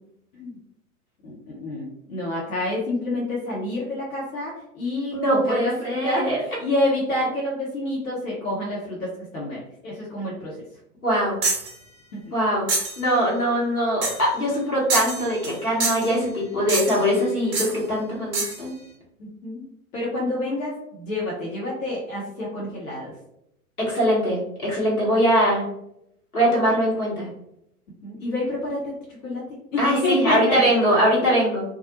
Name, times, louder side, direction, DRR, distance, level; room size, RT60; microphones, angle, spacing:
voice 1, 1.2-10.5 12.2-12.3 19.2-19.6 19.9-23.1 28.0-29.0 29.2-29.4 29.7-30.8 31.2-31.3, left 1 dB, 65° left, -4 dB, 0.8 m, -28 dB
voice 2, 5.1-6.4 11.0-11.4 12.3-12.6 13.0-18.7 23.8-25.6 26.3-27.3 29.8-31.6, equal, 85° left, -5 dB, 1.2 m, -22 dB
sound 1, 11.4-11.7 12.7-13.0 14.0-14.3 14.9-15.6 15.8-16.1 16.7-17.1 17.5-17.8 18.3-18.6, right 3 dB, 20° right, 0.4 m, -26 dB
2.3 x 2.0 x 2.7 m, 0.80 s
figure-of-eight pair, 95°, 43 cm